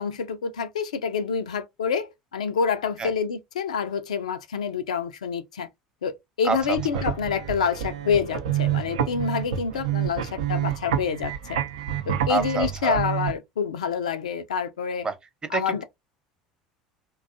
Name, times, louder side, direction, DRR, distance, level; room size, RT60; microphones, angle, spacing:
voice 1, 0.0-5.7 6.0-6.1 6.4-11.6 12.1-15.1 15.5-15.8, left 6 dB, 75° left, 0.3 m, -27 dB
sound 1, 6.5-13.3, right 10 dB, 75° right, 0.4 m, -28 dB
voice 2, 12.3-13.0 15.0-15.2 15.5-15.8, right 4 dB, 25° right, 0.7 m, -26 dB
2.5 x 2.2 x 2.6 m
figure-of-eight pair, 70°, 4 cm